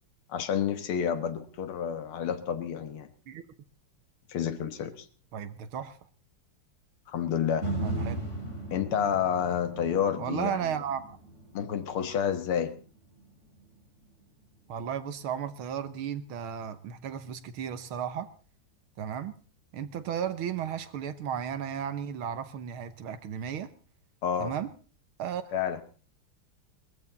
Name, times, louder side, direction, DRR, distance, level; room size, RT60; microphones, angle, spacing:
voice 1, 0.3-3.1 4.3-5.1 7.1-7.7 8.7-10.7 11.5-12.7 24.2-24.5 25.5-25.8, left 8 dB, 75° left, 10 dB, 2.2 m, -29 dB
voice 2, 5.3-6.0 7.8-8.2 10.2-11.2 14.7-18.3 19.0-19.3 19.7-23.7 24.4-24.7 25.2-25.5, right 8 dB, 70° right, 12 dB, 1.9 m, -34 dB
sound 1, 7.6-15.8 16.3-16.4, right 1 dB, 35° left, 2.9 m, -39 dB
20.5 x 14.5 x 4.0 m, 0.38 s
omnidirectional pair, 2.4 m